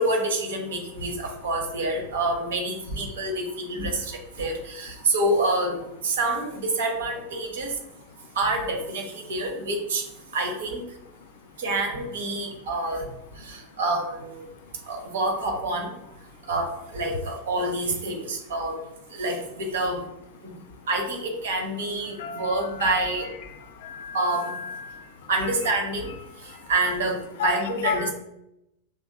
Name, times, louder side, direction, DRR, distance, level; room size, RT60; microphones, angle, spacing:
voice 1, 0.0-7.8 8.3-10.1 10.3-10.8 11.6-13.1 13.4-14.4 14.9-15.9 16.5-18.8 19.1-20.1 20.4-20.5 20.9-23.3 24.1-24.6 25.3-26.1 26.4-28.1, right 2 dB, 60° right, 3 dB, 1.0 m, -27 dB
voice 2, 22.2-23.0 23.8-24.9 27.4-28.1, left 6 dB, 55° left, 8 dB, 0.4 m, -32 dB
6.0 x 3.5 x 2.2 m, 0.84 s
figure-of-eight pair, 90°, 0 cm